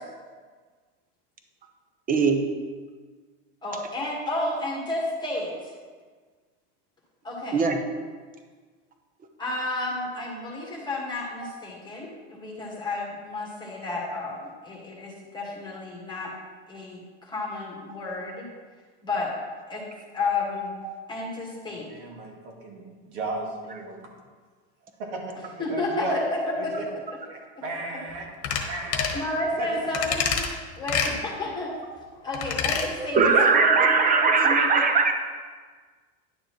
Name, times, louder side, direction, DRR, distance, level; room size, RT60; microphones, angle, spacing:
voice 1, 2.1-2.4 7.5-7.8 11.4-11.5 20.8-21.0 33.1-35.1, right 4 dB, 25° right, 5 dB, 0.9 m, -20 dB
voice 2, 3.6-5.5 7.2-7.6 9.4-16.3 16.7-18.4 19.0-19.3 19.7-19.9 20.1-20.7 21.1-21.9 25.6-26.2 26.6-26.7 27.6-28.0 29.1-30.5 30.7-31.7 32.2-34.9, left 2 dB, 10° left, -4 dB, 1.8 m, -31 dB
voice 3, 21.6-24.1 25.0-26.2 26.6-26.9 27.3-28.3 28.7-29.2 29.6-29.7, right 2 dB, 65° right, 0 dB, 2.0 m, -36 dB
sound 1, 28.4-28.6 28.9-29.2 29.9-30.5 30.9-31.1 32.3-32.9 33.2-33.3, left 7 dB, 45° left, 1.3 m, -26 dB
10.5 x 6.6 x 3.1 m, 1.5 s
supercardioid pair, 120°, 36 cm